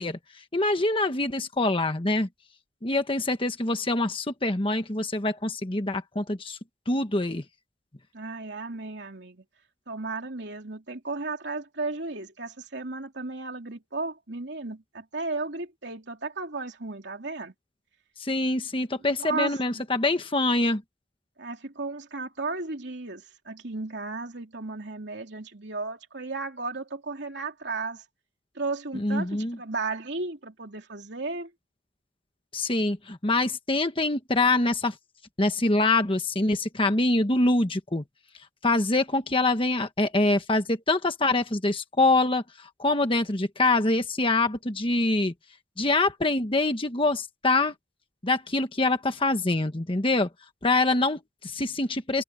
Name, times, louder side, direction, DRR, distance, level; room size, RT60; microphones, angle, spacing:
voice 1, 0.0-2.3 2.8-6.6 6.9-7.4 18.2-20.8 28.9-29.6 32.5-35.0 35.4-38.0 38.6-45.3 45.8-47.7 48.2-50.3 50.6-52.2, left 2 dB, 25° left, 1.3 m, -25 dB
voice 2, 8.1-9.4 9.9-17.5 19.2-19.8 21.4-28.0 28.5-31.5, right 3 dB, 60° right, 3.3 m, -34 dB
head